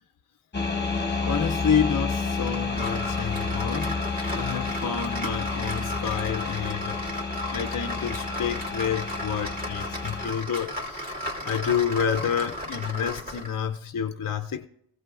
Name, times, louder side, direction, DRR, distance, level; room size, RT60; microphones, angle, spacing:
sound 1, 0.5-10.3, left 4 dB, 20° left, 1.1 m, -30 dB
voice 1, 1.2-7.0 7.5-11.2 11.4-14.7, left 7 dB, 45° left, 0.5 m, -29 dB
sound 2, 2.5-13.6, equal, 15° right, 2.4 m, -35 dB
19.0 x 16.0 x 2.4 m
wide cardioid pair, 75°, 50 cm